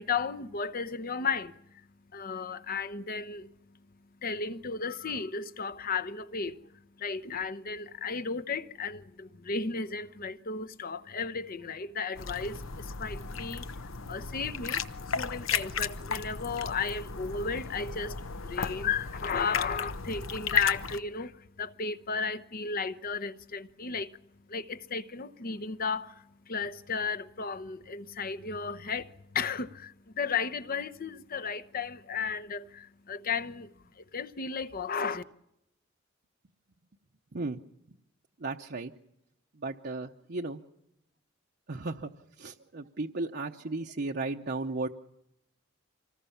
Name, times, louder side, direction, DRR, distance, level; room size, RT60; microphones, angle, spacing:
voice 1, 0.0-1.9 2.1-3.8 4.2-24.2 24.5-35.2, left 5 dB, 45° left, 0.8 m, -34 dB
sound 1, 12.1-21.0, left 5 dB, 85° left, 0.9 m, -35 dB
voice 2, 37.3-37.6 38.4-38.9 39.6-40.6 41.7-42.1 42.4-44.9, right 3 dB, 55° right, 0.8 m, -35 dB
25.5 x 19.5 x 7.2 m
head